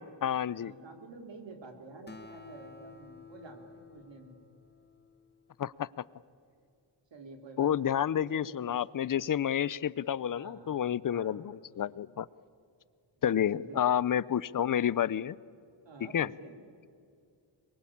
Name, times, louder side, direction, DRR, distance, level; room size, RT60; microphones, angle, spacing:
voice 1, 0.0-0.7 5.6-5.9 7.6-12.3 13.2-15.4 16.1-16.3, left 9 dB, 45° left, 20 dB, 0.6 m, -30 dB
voice 2, 0.5-4.4 7.1-8.8 10.1-11.5 13.3-14.1 15.9-16.5, right 3 dB, 70° right, 4 dB, 3.7 m, -49 dB
Acoustic guitar, 2.1-5.8, left 4 dB, 20° left, 1.4 m, -52 dB
23.5 x 22.5 x 8.7 m, 2.3 s
wide cardioid pair, 95°, 45 cm